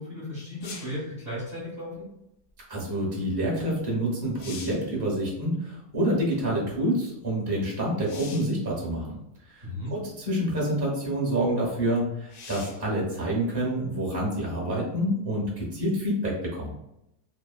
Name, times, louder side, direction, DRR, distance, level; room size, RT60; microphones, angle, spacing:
voice 1, 0.0-2.1 9.6-9.9, left 1 dB, 40° right, -8 dB, 1.0 m, -35 dB
sound 1, 0.6-1.1 3.7-3.8 4.2-4.9 8.0-8.6 9.6-9.7 12.3-12.9 16.5-16.6, left 4 dB, 70° left, 0.9 m, -43 dB
voice 2, 2.7-9.1 9.4-16.7, right 1 dB, 20° right, -3 dB, 0.7 m, -27 dB
3.0 x 2.0 x 2.3 m, 0.83 s
omnidirectional pair, 1.7 m